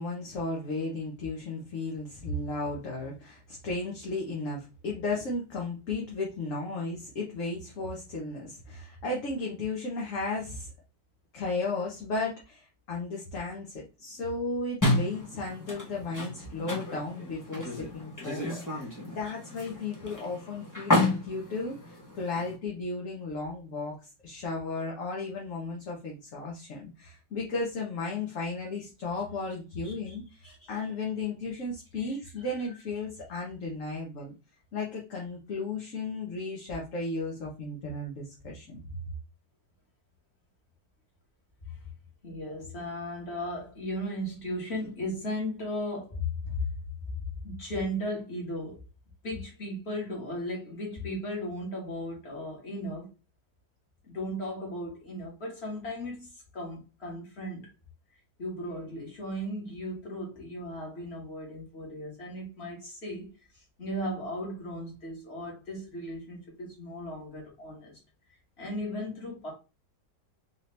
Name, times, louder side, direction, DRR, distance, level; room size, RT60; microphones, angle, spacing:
voice 1, 0.0-10.7 11.3-24.0 24.2-30.2 30.7-34.3 34.7-39.0, left 3 dB, 50° left, 1.1 m, -34 dB
sound 1, 14.8-22.6, left 2 dB, 15° left, 0.7 m, -31 dB
voice 2, 32.0-32.5 41.7-41.8 42.2-46.7 47.4-48.8 49.2-53.1 54.0-57.7 58.4-63.3 63.5-68.0 68.6-69.5, left 1 dB, 35° left, 1.8 m, -36 dB
4.0 x 2.9 x 3.2 m
omnidirectional pair, 2.0 m